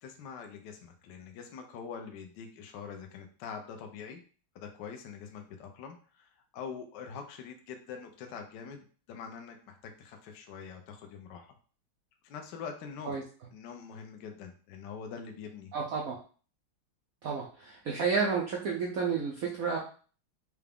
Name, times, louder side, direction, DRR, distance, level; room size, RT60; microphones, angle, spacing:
voice 1, 0.0-4.2 4.5-11.5 12.2-13.2 13.5-15.7, left 6 dB, 70° left, 4 dB, 1.1 m, -44 dB
voice 2, 15.7-16.2 17.2-19.8, right 5 dB, 80° right, -2 dB, 0.7 m, -31 dB
4.8 x 2.2 x 3.4 m, 0.40 s
omnidirectional pair, 2.3 m